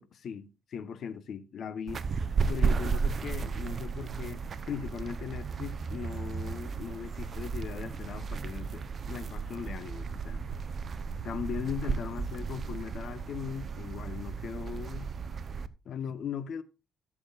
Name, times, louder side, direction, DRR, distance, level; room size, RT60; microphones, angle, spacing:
voice 1, 0.0-2.0 2.5-10.4 11.2-15.1 15.8-16.6, left 7 dB, 65° left, 1.1 m, -39 dB
sound 1, 1.9-15.7, right 5 dB, 45° right, 0.8 m, -34 dB
16.0 x 7.7 x 2.5 m
cardioid pair, 90°, 0 cm